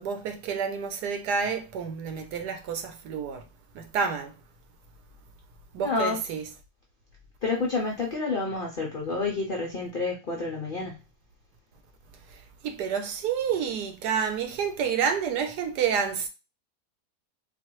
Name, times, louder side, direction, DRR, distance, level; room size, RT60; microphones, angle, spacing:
voice 1, 0.0-3.5 3.7-4.3 5.7-6.5 12.3-16.3, right 6 dB, 85° right, 1.3 m, -29 dB
voice 2, 5.8-6.2 7.4-11.0, left 3 dB, 60° left, 0.5 m, -29 dB
3.9 x 2.6 x 3.0 m
omnidirectional pair, 1.7 m